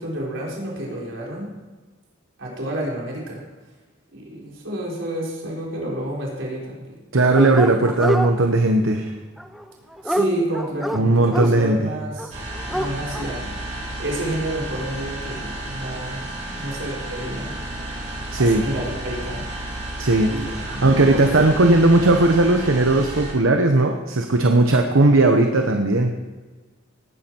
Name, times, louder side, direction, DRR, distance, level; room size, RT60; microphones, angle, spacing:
voice 1, 0.0-1.5 2.4-3.4 4.1-7.0 10.0-12.3 12.7-13.5 14.0-16.2 16.5-17.5 18.4-19.5 20.3-21.5, right 1 dB, 70° right, -3 dB, 3.8 m, -29 dB
voice 2, 7.1-9.1 10.9-11.8 18.3-18.6 20.0-26.1, right 2 dB, 85° right, 4 dB, 1.0 m, -17 dB
Dog, 7.4-8.3 9.4-11.5 12.2-12.3 12.5-13.3, equal, ahead, 0.6 m, -25 dB
sound 1, 12.3-23.3, right 1 dB, 35° right, 3.3 m, -32 dB
18.5 x 9.9 x 4.5 m, 1.3 s
head